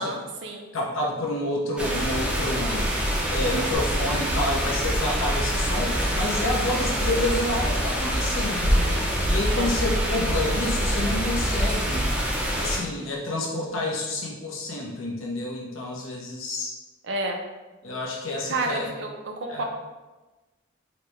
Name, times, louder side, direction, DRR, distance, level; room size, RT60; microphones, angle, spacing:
voice 1, 0.0-0.7 9.5-9.7 17.0-17.4 18.5-19.6, right 2 dB, 65° right, 3 dB, 0.5 m, -30 dB
voice 2, 0.7-2.9 3.3-12.1 12.5-16.7 17.8-18.9 19.5-19.6, left 1 dB, 90° left, -2 dB, 0.8 m, -29 dB
sound 1, 1.8-12.8, equal, 5° right, 0.4 m, -26 dB
sound 2, 3.7-12.4, right 1 dB, 45° left, 0.8 m, -32 dB
4.1 x 2.1 x 3.0 m, 1.2 s
head